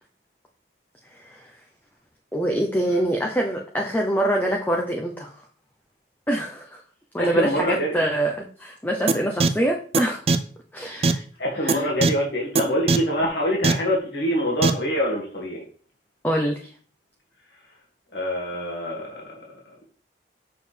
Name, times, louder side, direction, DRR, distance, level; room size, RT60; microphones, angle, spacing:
voice 1, 2.3-5.3 6.3-6.8 7.1-10.2 10.7-11.2 11.6-11.8 16.2-16.6, right 1 dB, 10° left, 0 dB, 0.8 m, -24 dB
voice 2, 7.2-7.9 11.4-15.6 18.1-19.3, equal, 70° left, -2 dB, 2.2 m, -25 dB
sound 1, 9.1-9.2 9.4-9.5 9.9-10.0 10.3-10.4 11.0-11.1 11.7-11.8 12.0-12.1 12.6-12.7 12.9-13.0 13.6-13.7 14.6-14.7, right 3 dB, 35° right, 0.5 m, -18 dB
6.7 x 6.6 x 3.4 m, 0.43 s
head